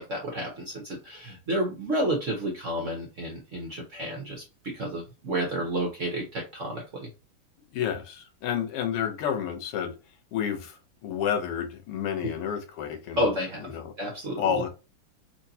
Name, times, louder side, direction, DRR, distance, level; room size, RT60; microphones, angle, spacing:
voice 1, 0.0-7.1 12.2-12.3 13.2-14.6, equal, 55° right, 0.9 m, -31 dB
voice 2, 7.7-9.9 10.3-13.3 13.6-13.9 14.4-14.7, left 8 dB, 85° left, 1.8 m, -30 dB
4.5 x 2.6 x 2.7 m
omnidirectional pair, 2.4 m